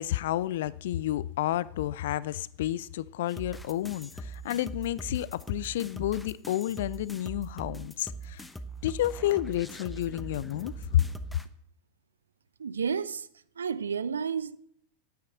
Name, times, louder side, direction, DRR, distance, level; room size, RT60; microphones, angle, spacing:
voice 1, 0.0-8.4 8.8-11.1, left 13 dB, 55° left, 0.4 m, -30 dB
sound 1, 3.3-11.5, right 2 dB, 5° left, 0.8 m, -42 dB
voice 2, 12.6-13.3 13.6-14.6, right 6 dB, 70° right, 0.6 m, -31 dB
9.7 x 9.4 x 7.9 m
figure-of-eight pair, 90°, 0 cm